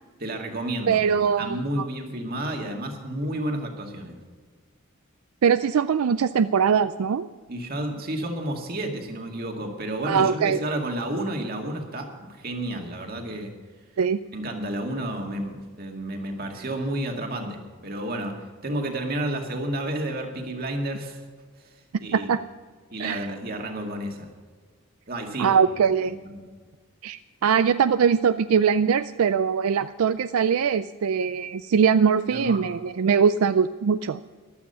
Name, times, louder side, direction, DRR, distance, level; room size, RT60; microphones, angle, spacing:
voice 1, 0.2-4.2 7.5-13.5 14.3-18.3 18.6-21.2 22.0-22.3 22.9-24.3 25.1-25.6 26.1-26.4 32.3-32.6, right 1 dB, 45° right, 3 dB, 2.1 m, -31 dB
voice 2, 0.9-1.9 5.4-7.3 10.0-10.6 14.0-14.2 22.1-22.4 23.0-23.3 25.4-26.2 27.0-34.2, right 6 dB, 80° right, 13 dB, 0.4 m, -22 dB
14.5 x 12.0 x 5.6 m, 1.5 s
head